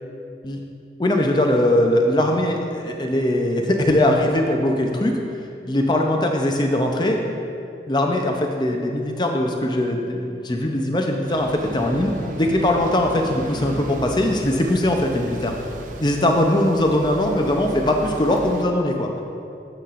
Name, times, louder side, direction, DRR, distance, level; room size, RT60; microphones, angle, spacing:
voice 1, 1.0-5.2 5.6-7.2 7.9-15.5 16.0-19.1, left 1 dB, 25° left, 2 dB, 0.6 m, -21 dB
sound 1, 11.3-18.6, right 1 dB, 45° right, 0.5 m, -36 dB
12.0 x 5.7 x 2.5 m, 2.6 s
head